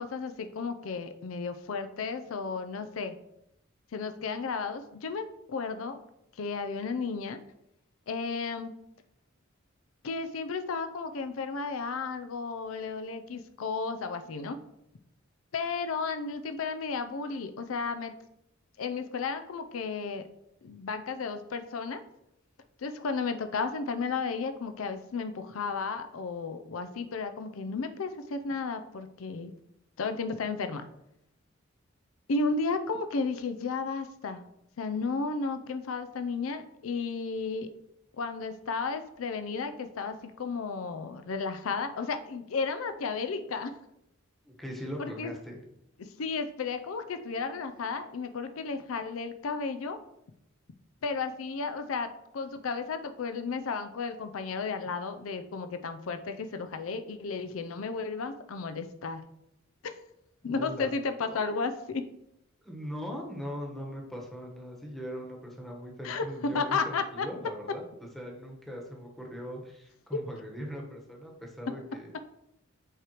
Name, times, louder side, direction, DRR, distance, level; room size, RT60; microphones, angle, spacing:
voice 1, 0.0-3.2 3.9-6.0 6.4-7.4 8.1-8.7 10.0-14.6 15.5-18.1 18.8-20.2 20.6-22.0 22.8-29.5 30.0-30.9 32.3-34.4 34.8-37.7 38.2-43.8 45.0-45.3 46.0-50.0 51.0-52.1 52.3-59.2 59.8-59.9 60.4-62.0 66.0-66.2 66.5-67.3 70.1-70.2, left 4 dB, 80° left, 9 dB, 0.5 m, -33 dB
voice 2, 44.4-45.6 60.4-60.9 61.2-61.6 62.6-67.8 68.1-72.2, equal, ahead, -1 dB, 1.2 m, -40 dB
7.8 x 4.9 x 3.0 m, 0.81 s
head